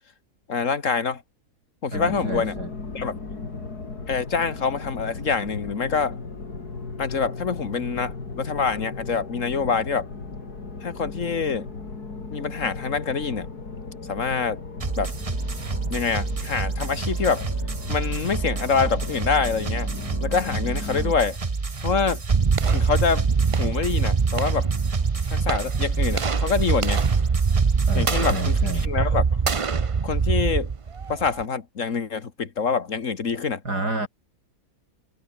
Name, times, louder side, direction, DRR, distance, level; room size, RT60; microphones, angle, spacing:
voice 1, 0.5-1.2 1.8-2.5 2.9-3.2 4.1-6.2 7.0-10.1 10.8-11.7 12.3-13.5 14.1-14.6 15.0-15.1 15.9-17.5 17.9-19.9 20.2-21.4 21.8-22.2 22.7-23.3 23.6-24.7 25.3-27.0 27.9-29.3 30.0-30.7 31.1-33.6, left 5 dB, 50° left, 2.2 m, -25 dB
sound 1, 1.9-21.1, left 4 dB, 75° left, 4.0 m, -36 dB
voice 2, 1.9-2.7 27.9-28.9 33.6-34.1, right 2 dB, 80° right, 8.1 m, -29 dB
sound 2, 14.8-28.8, right 4 dB, 25° right, 1.1 m, -29 dB
sound 3, 22.3-31.4, right 5 dB, 45° right, 0.4 m, -23 dB
omnidirectional pair, 1.7 m